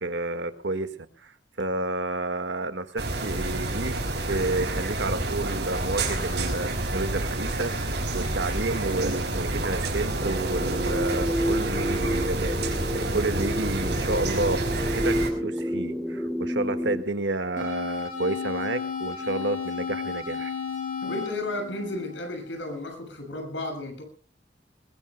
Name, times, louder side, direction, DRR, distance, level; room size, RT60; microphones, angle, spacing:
voice 1, 0.0-0.9 1.2-3.9 4.3-20.5, right 2 dB, 80° right, 10 dB, 1.7 m, -30 dB
sound 1, 3.0-15.3, right 2 dB, 65° right, 5.5 m, -29 dB
sound 2, 10.2-17.0, equal, ahead, 1.5 m, -30 dB
sound 3, 17.6-22.6, left 6 dB, 45° left, 5.9 m, -33 dB
voice 2, 21.0-24.0, left 2 dB, 85° left, 5 dB, 6.7 m, -33 dB
22.0 x 21.5 x 2.2 m, 0.40 s
head